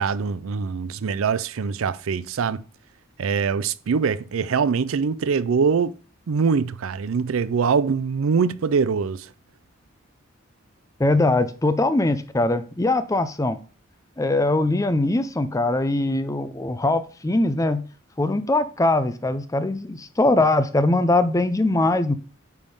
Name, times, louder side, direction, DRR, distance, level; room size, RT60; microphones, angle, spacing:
voice 1, 0.0-2.6 3.2-5.9 6.3-9.3, right 5 dB, 75° right, 0.4 m, -23 dB
voice 2, 11.0-13.6 14.2-17.8 18.2-22.1, left 2 dB, 15° left, 0.5 m, -21 dB
9.2 x 3.6 x 5.4 m
head